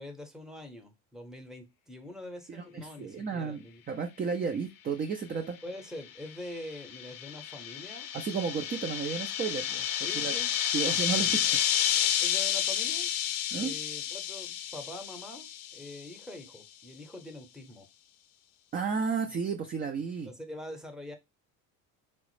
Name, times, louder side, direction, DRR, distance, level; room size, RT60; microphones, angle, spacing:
voice 1, 0.0-3.8 5.6-8.1 10.0-10.5 11.1-11.5 12.2-13.1 13.5-17.9 19.2-19.4 20.2-21.2, left 1 dB, ahead, 0.7 m, -44 dB
voice 2, 2.5-5.6 8.1-10.3 10.7-11.3 13.5-13.7 18.7-20.3, right 5 dB, 20° right, 0.4 m, -33 dB
sound 1, 6.3-16.1, left 10 dB, 55° left, 0.5 m, -31 dB
3.6 x 2.1 x 3.1 m
hypercardioid pair, 80°, 43 cm